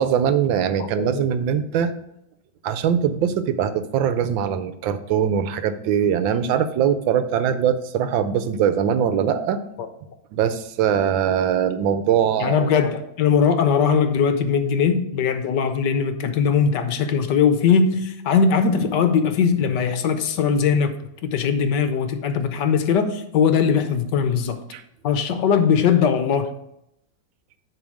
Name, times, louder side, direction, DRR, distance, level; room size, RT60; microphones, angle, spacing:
voice 1, 0.0-1.9 2.6-9.6 10.3-12.6 24.7-24.8, right 8 dB, 80° right, 1.4 m, -21 dB
voice 2, 0.8-1.2 12.4-20.9 21.2-24.6 25.0-26.5, left 6 dB, 70° left, 1.3 m, -20 dB
10.5 x 3.5 x 6.3 m
omnidirectional pair, 2.1 m